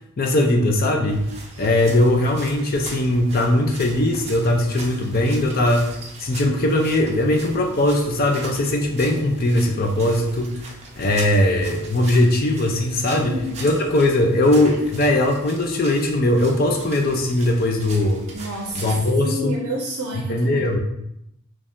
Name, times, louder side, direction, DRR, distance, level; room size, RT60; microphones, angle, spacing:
voice 1, 0.2-1.2 1.6-10.7 11.0-13.3 13.6-18.3 18.7-19.6 20.3-20.8, left 1 dB, 40° left, 3 dB, 0.5 m, -20 dB
sound 1, 1.1-19.1, right 2 dB, 30° right, 0.5 m, -40 dB
voice 2, 13.0-13.7 18.3-20.8, right 1 dB, 75° right, 0 dB, 0.5 m, -30 dB
3.1 x 2.7 x 3.5 m, 0.79 s
head